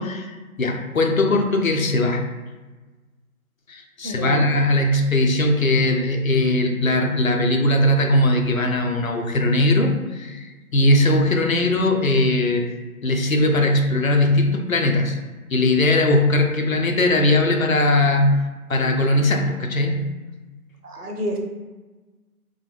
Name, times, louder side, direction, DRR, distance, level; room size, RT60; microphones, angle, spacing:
voice 1, 0.0-2.2 3.7-12.7 13.0-15.2 15.5-18.4 18.7-20.0, left 1 dB, 65° left, 4 dB, 0.5 m, -19 dB
voice 2, 4.0-4.5 20.8-21.4, equal, 85° right, 1 dB, 0.8 m, -28 dB
2.5 x 2.0 x 3.2 m, 1.2 s
figure-of-eight pair, 175°, 45 cm